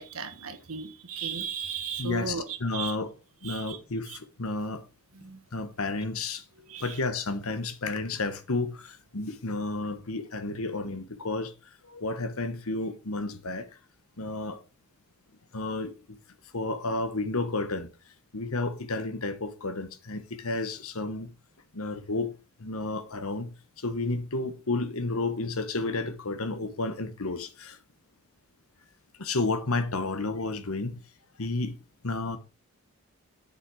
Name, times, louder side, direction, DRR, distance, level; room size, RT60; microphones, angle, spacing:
voice 1, 0.0-2.9 3.4-3.8 4.1-4.2 5.1-5.4 6.7-7.0, right 6 dB, 75° right, 1.6 m, -36 dB
voice 2, 2.0-3.1 3.4-4.8 5.5-6.4 6.8-11.5 11.8-13.7 14.2-14.6 15.5-16.2 16.5-17.9 18.3-21.3 21.7-22.3 22.6-27.8 29.2-31.0 31.4-31.7 32.0-32.4, left 2 dB, 80° left, 1.2 m, -31 dB
8.4 x 6.9 x 4.8 m
head